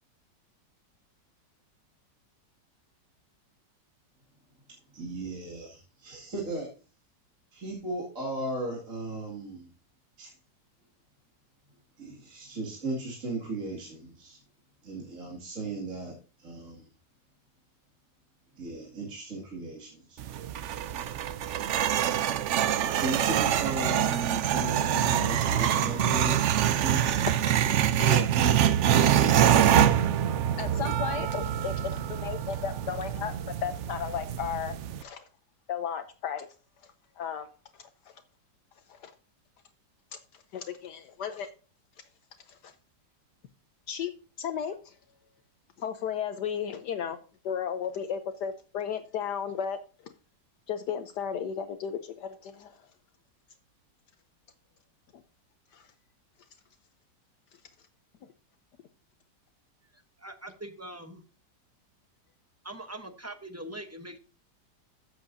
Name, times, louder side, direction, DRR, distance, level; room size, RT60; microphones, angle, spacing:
voice 1, 4.9-6.7 7.5-9.7 10.2-10.3 12.0-14.4 14.8-16.9 18.6-20.2 21.5-22.0 22.9-27.1 31.9-32.0, right 2 dB, 45° right, -3 dB, 2.7 m, -36 dB
sound 1, 20.2-35.0, right 10 dB, 85° right, 0.6 m, -25 dB
voice 2, 28.0-28.3 28.5-28.6 30.6-33.3 33.6-34.7 35.0-35.2 35.7-36.5 36.8-37.5 37.7-38.1 38.9-39.1 40.1-40.2 40.5-41.5 42.5-42.7 43.9-44.1 44.4-44.9 45.8-47.2 47.4-49.8 50.7-52.8 55.7-55.9, left 8 dB, 70° left, 9 dB, 1.3 m, -34 dB
voice 3, 59.9-61.2 62.6-64.2, right 1 dB, 15° right, 7 dB, 0.5 m, -42 dB
13.5 x 8.0 x 2.7 m, 0.36 s
omnidirectional pair, 1.9 m